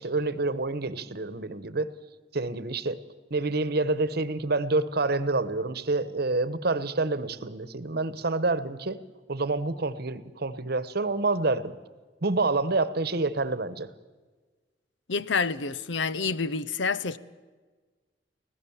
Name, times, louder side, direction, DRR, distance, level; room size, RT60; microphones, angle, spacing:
voice 1, 0.0-1.9 2.3-3.0 3.3-9.0 9.3-11.7 12.2-13.9, right 3 dB, 60° right, 1.1 m, -27 dB
voice 2, 15.1-17.2, left 4 dB, 85° left, 0.8 m, -28 dB
25.5 x 17.0 x 7.2 m
head